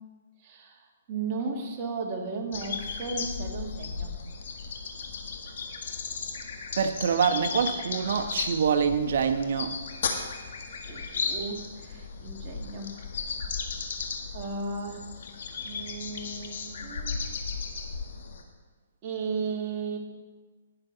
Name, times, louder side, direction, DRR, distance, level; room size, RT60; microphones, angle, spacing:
voice 1, 0.4-4.2 10.9-12.9 14.3-15.1 15.6-17.3 19.0-20.0, right 4 dB, 35° right, -1 dB, 2.0 m, -35 dB
sound 1, 2.5-18.4, left 5 dB, 65° left, 1.7 m, -35 dB
voice 2, 6.8-9.8, right 6 dB, 60° right, 7 dB, 1.1 m, -25 dB
19.5 x 6.9 x 4.0 m, 1.3 s
hypercardioid pair, 145°, 0 cm